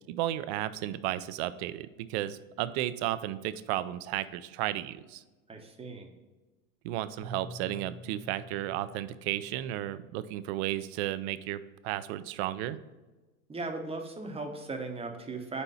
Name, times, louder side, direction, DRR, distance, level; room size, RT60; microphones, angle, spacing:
voice 1, 0.1-5.2 6.8-12.8, right 13 dB, 50° right, 14 dB, 0.4 m, -33 dB
voice 2, 5.5-6.1 13.5-15.6, right 3 dB, 15° right, 4 dB, 0.8 m, -37 dB
Keyboard (musical), 7.2-10.1, left 1 dB, 45° left, 1.8 m, -48 dB
4.4 x 4.1 x 5.4 m, 1.2 s
hypercardioid pair, 95°, 42 cm